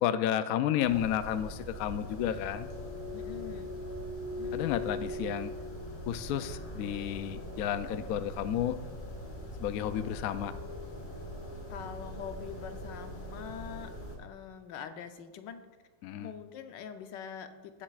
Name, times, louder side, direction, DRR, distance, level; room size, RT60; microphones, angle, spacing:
voice 1, 0.0-2.7 4.5-5.5 6.1-8.8 9.6-10.5 16.0-16.3, left 10 dB, 70° left, 11 dB, 0.8 m, -31 dB
sound 1, 0.8-14.2, left 1 dB, 35° left, 1.9 m, -41 dB
voice 2, 3.1-3.7 4.3-4.7 11.7-13.9 14.2-15.6 16.2-17.8, left 7 dB, 90° left, 8 dB, 1.4 m, -44 dB
16.0 x 7.4 x 2.4 m, 1.3 s
omnidirectional pair, 1.9 m